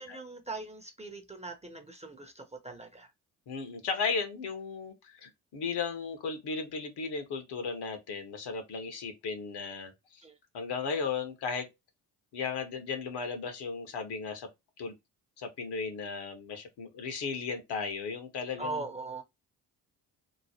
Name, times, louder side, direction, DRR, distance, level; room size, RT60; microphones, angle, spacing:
voice 1, 0.0-3.1 10.2-10.3 18.6-19.2, right 3 dB, 15° right, 0.7 m, -40 dB
voice 2, 3.5-10.2 10.5-11.7 12.3-14.5 14.8-14.9 15.4-18.8, left 5 dB, 60° left, 1.1 m, -35 dB
3.0 x 2.1 x 2.7 m
hypercardioid pair, 55°, 44 cm